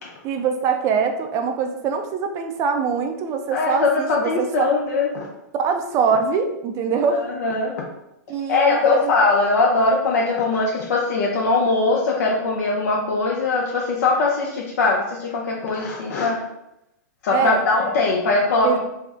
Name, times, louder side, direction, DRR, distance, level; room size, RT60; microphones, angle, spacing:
voice 1, 0.2-4.7 5.6-7.3 8.3-9.1 17.3-17.6 18.6-18.8, right 6 dB, 35° right, 6 dB, 0.4 m, -23 dB
voice 2, 3.5-5.3 7.1-7.7 8.5-16.4 17.2-18.8, left 3 dB, 65° left, -2 dB, 0.5 m, -21 dB
2.6 x 2.0 x 3.4 m, 0.85 s
hypercardioid pair, 120°, 9 cm